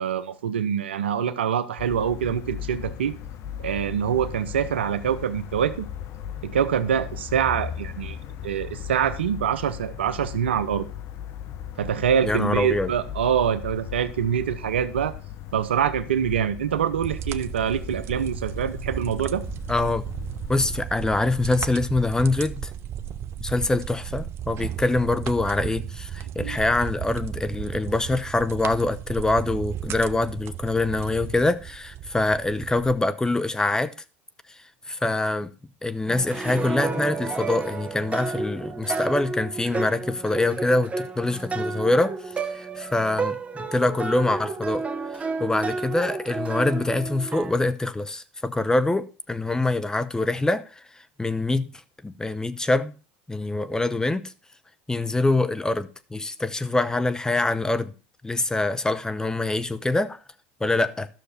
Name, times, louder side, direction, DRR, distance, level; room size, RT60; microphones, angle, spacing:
voice 1, 0.0-3.1 3.6-5.9 6.4-8.2 8.4-10.9 11.8-15.2 15.5-19.4 26.4-26.6, right 8 dB, 85° right, 0.7 m, -25 dB
sound 1, 1.8-20.8, left 9 dB, 55° left, 0.9 m, -38 dB
voice 2, 12.2-12.9 19.7-20.0 20.5-22.7 23.4-33.9 34.9-35.5 35.8-42.1 42.5-44.9 45.2-50.8 51.2-51.7 52.0-52.9 53.3-54.3 54.9-57.9 58.2-60.2 60.6-61.1, left 2 dB, 10° left, 0.8 m, -24 dB
sound 2, 17.0-32.9, right 10 dB, 45° right, 0.6 m, -35 dB
sound 3, 36.1-47.5, right 4 dB, 20° right, 1.1 m, -31 dB
12.0 x 6.6 x 4.2 m
hypercardioid pair, 80°, 6 cm